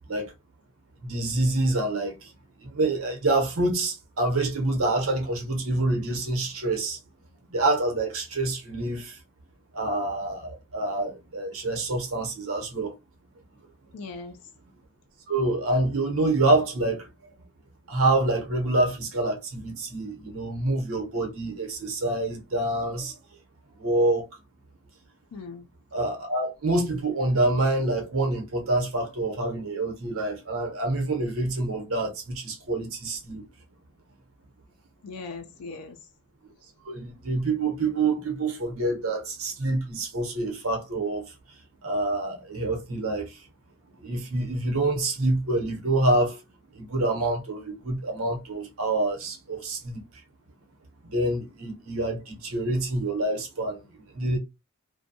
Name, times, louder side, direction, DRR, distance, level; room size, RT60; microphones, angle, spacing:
voice 1, 1.0-2.3 2.6-7.0 7.5-9.2 9.7-12.9 15.3-17.1 17.9-23.1 23.8-24.2 25.9-33.5 36.8-41.3 41.8-43.4 44.0-46.4 46.7-50.0 51.0-54.4, right 2 dB, 70° right, 0.9 m, -26 dB
voice 2, 13.9-14.4 25.3-25.6 35.0-36.0, left 4 dB, 80° left, 0.4 m, -39 dB
2.6 x 2.2 x 2.7 m
head